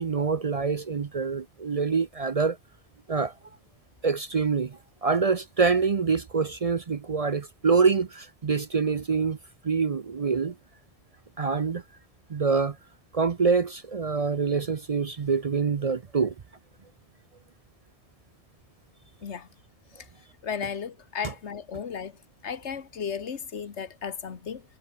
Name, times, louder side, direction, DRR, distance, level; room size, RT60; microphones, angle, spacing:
voice 1, 0.0-2.6 3.1-3.3 4.0-9.4 9.6-10.5 11.4-11.8 12.3-12.8 13.1-16.3 21.2-21.3, right 5 dB, 40° right, 0.6 m, -25 dB
voice 2, 20.4-22.1 22.4-24.6, left 7 dB, 85° left, 1.6 m, -34 dB
omnidirectional pair, 1.1 m